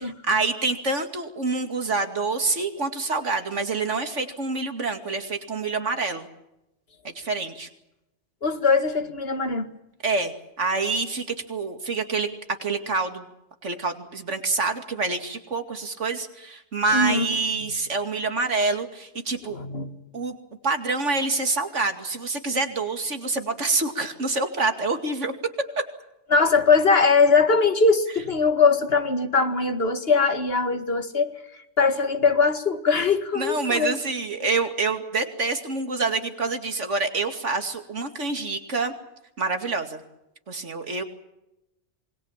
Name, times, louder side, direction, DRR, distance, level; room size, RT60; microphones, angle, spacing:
voice 1, 0.2-6.3 7.0-7.7 10.0-12.3 12.6-13.3 13.6-19.6 20.1-20.4 20.6-25.3 33.3-38.9 39.4-40.0 40.5-41.0, right 3 dB, 90° right, 2.7 m, -27 dB
voice 2, 8.4-9.7 16.9-17.3 19.4-19.9 26.3-31.3 31.8-33.9, left 4 dB, 55° left, 2.1 m, -21 dB
27.0 x 22.0 x 7.3 m
omnidirectional pair, 1.2 m